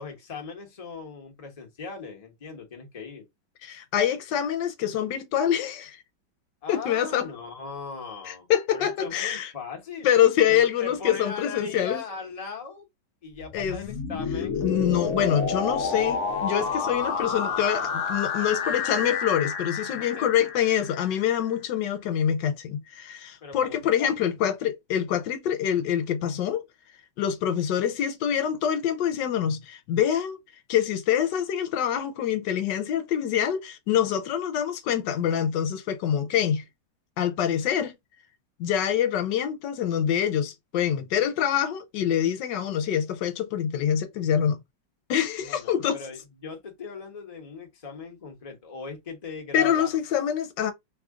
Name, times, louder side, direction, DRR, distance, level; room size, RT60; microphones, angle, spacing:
voice 1, 0.0-3.2 6.6-10.1 10.5-12.9 13.2-14.6 18.3-18.9 19.9-20.3 23.4-24.3 45.4-49.9, left 5 dB, 25° left, 0.9 m, -39 dB
voice 2, 3.6-6.0 6.7-7.3 8.3-9.5 10.0-12.0 13.5-13.8 14.6-26.6 27.2-30.4 30.7-36.6 37.2-37.9 38.6-44.6 45.1-46.0 49.5-50.7, left 9 dB, 80° left, 1.2 m, -25 dB
sound 1, 13.4-21.3, left 5 dB, 60° left, 0.9 m, -30 dB
3.2 x 2.4 x 3.6 m
omnidirectional pair, 1.9 m